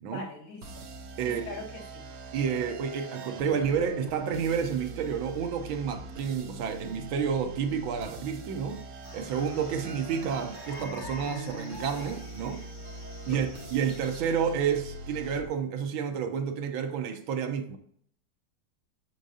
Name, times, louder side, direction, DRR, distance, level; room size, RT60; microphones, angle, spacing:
voice 1, 0.1-0.9 1.3-2.1 13.3-13.5, left 3 dB, 70° left, 2.4 m, -42 dB
sound 1, 0.6-15.4, right 2 dB, 60° right, 1.1 m, -42 dB
voice 2, 2.3-8.8 9.1-12.6 13.3-17.8, right 7 dB, 80° right, 1.5 m, -30 dB
sound 2, 9.0-14.2, left 3 dB, 35° left, 0.8 m, -47 dB
6.3 x 6.2 x 2.6 m
omnidirectional pair, 2.2 m